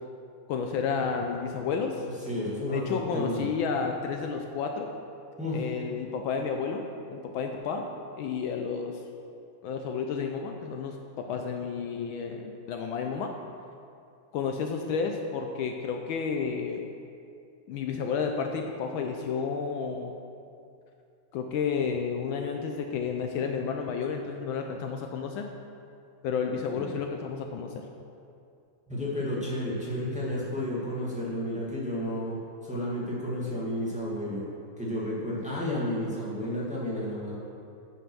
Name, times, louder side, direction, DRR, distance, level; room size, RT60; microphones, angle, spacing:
voice 1, 0.5-2.0 2.7-4.9 5.5-7.9 8.2-9.0 9.6-13.3 14.3-16.8 17.7-20.1 21.3-25.5 26.2-27.8, left 6 dB, 75° left, 3 dB, 1.3 m, -31 dB
voice 2, 2.3-3.5 5.4-5.6 26.5-26.9 28.9-34.5 34.8-37.3, left 1 dB, 5° right, -7 dB, 1.6 m, -32 dB
9.2 x 5.7 x 6.2 m, 2.5 s
omnidirectional pair, 2.3 m